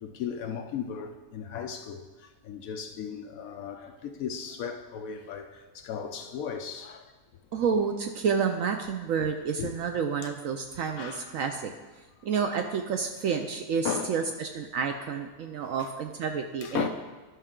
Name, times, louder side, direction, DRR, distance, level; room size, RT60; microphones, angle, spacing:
voice 1, 0.0-2.0 2.4-7.0 9.6-9.7 11.0-11.3 13.8-14.1 15.7-15.9 16.6-16.9, left 7 dB, 70° left, 0.9 m, -36 dB
voice 2, 7.5-11.7 12.2-16.9, right 6 dB, 70° right, 0.8 m, -29 dB
11.5 x 5.7 x 3.7 m
omnidirectional pair, 1.7 m